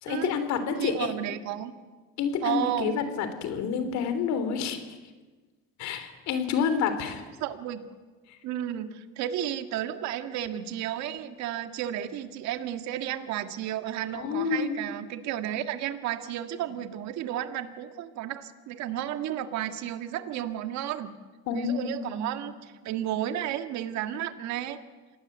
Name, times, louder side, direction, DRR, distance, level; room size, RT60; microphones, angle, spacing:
voice 1, 0.0-1.1 2.2-4.8 5.8-7.2 14.1-14.8 21.5-22.2, left 6 dB, 70° left, 10 dB, 3.4 m, -28 dB
voice 2, 0.8-1.7 2.4-3.0 7.4-7.8 8.4-21.1 21.5-24.8, right 11 dB, 70° right, 9 dB, 1.9 m, -32 dB
26.5 x 18.5 x 8.1 m, 1.3 s
supercardioid pair, 100°, 29 cm